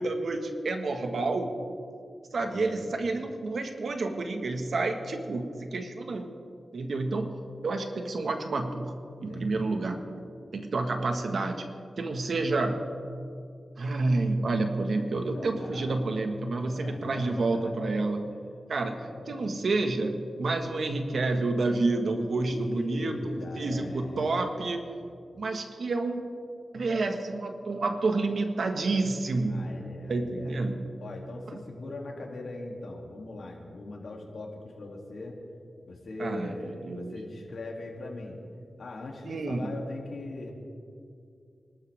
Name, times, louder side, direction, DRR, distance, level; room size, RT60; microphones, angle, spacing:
voice 1, 0.0-1.5 2.3-6.3 6.7-7.4 7.6-8.9 9.2-10.0 10.5-11.7 12.0-12.8 13.8-18.3 18.7-24.9 25.4-26.2 26.7-29.6 30.1-30.9 36.2-37.2 39.2-39.7, right 3 dB, 70° right, 5 dB, 1.6 m, -29 dB
voice 2, 2.3-3.0 9.3-9.8 15.3-16.1 16.6-18.1 19.0-19.6 22.5-24.5 29.5-30.6 31.0-35.4 35.8-38.4 38.8-40.5, left 2 dB, 75° left, -1 dB, 2.8 m, -41 dB
26.5 x 12.5 x 3.6 m, 2.4 s
cardioid pair, 65°, 0 cm